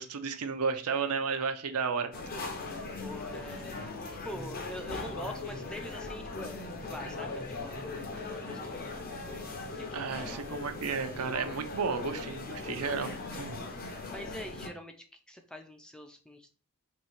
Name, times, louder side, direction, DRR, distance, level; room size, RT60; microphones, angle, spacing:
voice 1, 0.0-2.1 9.9-13.6, right 5 dB, 80° right, 8 dB, 0.5 m, -33 dB
sound 1, 2.1-14.7, left 3 dB, 40° left, 0.7 m, -39 dB
voice 2, 3.0-3.8 4.2-9.0 9.7-10.5 14.1-16.5, equal, 5° left, 5 dB, 0.3 m, -45 dB
2.9 x 2.8 x 4.3 m, 0.40 s
head